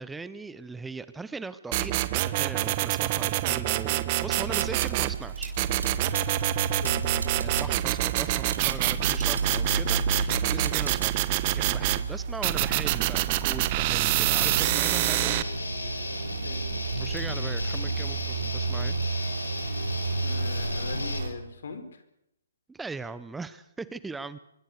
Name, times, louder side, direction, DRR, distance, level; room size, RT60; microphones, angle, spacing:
voice 1, 0.0-5.5 7.3-15.4 17.0-19.0 22.7-24.4, right 4 dB, 5° right, 14 dB, 0.8 m, -39 dB
sound 1, 1.7-5.2 5.6-12.0 12.4-15.4, right 16 dB, 35° right, 1.3 m, -26 dB
sound 2, 4.3-21.3, right 4 dB, 80° right, 4.6 m, -32 dB
Guitar, 14.3-21.2, left 3 dB, 90° left, 5.3 m, -36 dB
voice 2, 20.2-22.0, left 4 dB, 65° left, 9 dB, 4.6 m, -40 dB
25.0 x 22.5 x 6.6 m, 0.80 s
hypercardioid pair, 140°, 0 cm